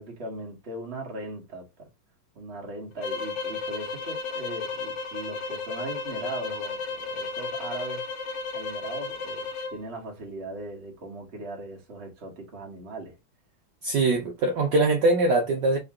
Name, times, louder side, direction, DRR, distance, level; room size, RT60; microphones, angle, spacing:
voice 1, 0.0-1.9 2.3-8.0 8.5-13.2, right 2 dB, 35° right, 1.3 m, -39 dB
sound 1, 3.0-9.8, left 4 dB, 65° left, 1.4 m, -33 dB
voice 2, 13.8-15.8, right 2 dB, 65° right, 1.3 m, -22 dB
3.8 x 2.9 x 3.6 m
omnidirectional pair, 2.3 m